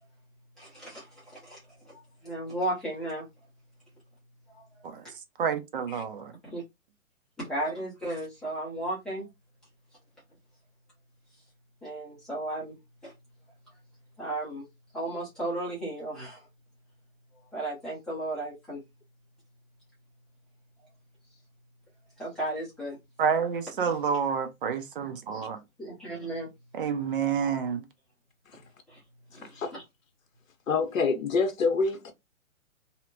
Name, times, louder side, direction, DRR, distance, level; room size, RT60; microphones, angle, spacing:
voice 1, 0.6-1.6 1.8-1.9 2.2-3.2 6.5-6.6 7.4-9.3 11.8-12.7 13.0-13.1 14.2-14.6 14.9-16.4 17.5-18.8 22.2-23.0 25.3-25.4 25.8-26.5 28.9-29.0 29.3-29.8, right 1 dB, ahead, 0.6 m, -34 dB
voice 2, 5.4-6.3 23.2-25.6 26.7-27.8, right 6 dB, 40° right, 0.5 m, -29 dB
voice 3, 29.4-29.7 30.7-32.1, left 4 dB, 75° left, 0.7 m, -27 dB
2.8 x 2.1 x 2.6 m
figure-of-eight pair, 130°, 41 cm